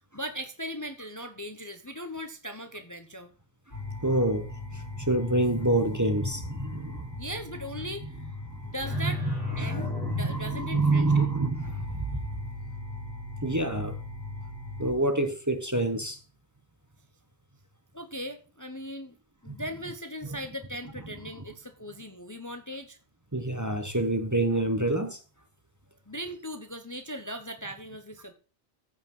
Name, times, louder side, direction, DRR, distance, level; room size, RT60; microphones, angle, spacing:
voice 1, 0.1-3.3 7.2-8.3 8.6-9.2 9.6-9.9 10.2-11.3 17.9-19.1 19.4-23.0 26.1-28.3, equal, 20° left, 0.9 m, -38 dB
sound 1, 3.7-14.9, left 3 dB, 50° left, 6.7 m, -37 dB
voice 2, 4.0-7.2 8.0-8.1 8.5-8.6 8.9-12.2 13.4-14.0 14.8-16.2 19.5-19.6 23.3-25.2, right 2 dB, 15° right, 1.1 m, -27 dB
14.5 x 5.3 x 5.4 m
omnidirectional pair, 1.1 m